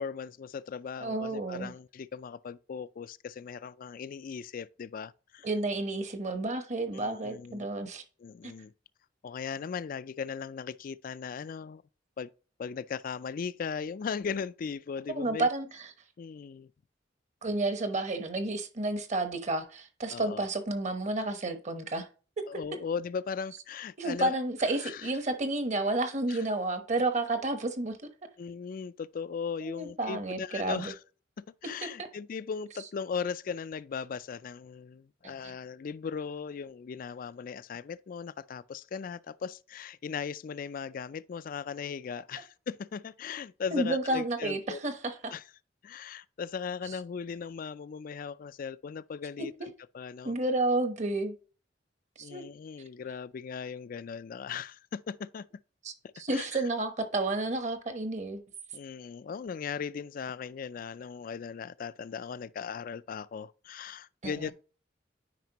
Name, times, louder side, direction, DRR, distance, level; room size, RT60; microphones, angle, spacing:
voice 1, 0.0-5.5 6.9-7.7 8.2-8.7 9.2-11.8 12.2-12.3 12.6-15.5 16.2-16.7 20.1-20.5 22.5-24.4 24.8-25.1 26.3-26.4 28.4-31.0 31.6-44.8 45.3-45.4 45.8-50.4 52.2-55.5 56.3-56.7 58.7-64.5, left 6 dB, 50° left, 0.3 m, -38 dB
voice 2, 1.0-1.7 5.4-8.0 8.4-8.5 15.1-15.9 17.4-22.1 24.0-28.0 29.6-30.9 35.2-35.5 43.7-45.3 50.2-51.3 52.2-52.4 55.8-55.9 56.2-58.4 64.2-64.5, right 2 dB, 40° right, 1.0 m, -31 dB
9.2 x 5.1 x 2.9 m
head